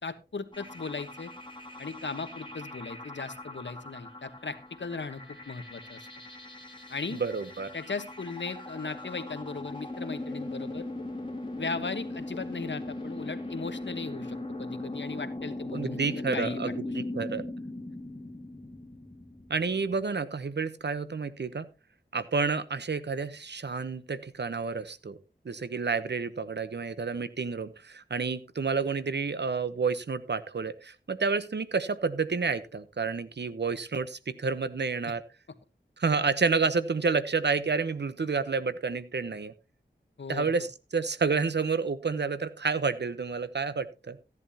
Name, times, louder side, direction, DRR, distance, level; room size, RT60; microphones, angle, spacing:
voice 1, 0.0-1.3 1.8-6.0 6.9-7.2 7.7-10.8 11.6-16.6 40.2-40.5, left 4 dB, 75° left, 10 dB, 1.2 m, -37 dB
sound 1, 0.5-20.0, left 2 dB, 25° left, 2.5 m, -39 dB
voice 2, 7.1-7.7 15.7-17.4 19.5-21.7 22.1-25.2 25.4-35.2 36.0-39.5 40.3-44.2, right 4 dB, 65° right, 13 dB, 0.9 m, -30 dB
14.5 x 11.0 x 2.8 m, 0.29 s
wide cardioid pair, 65°, 19 cm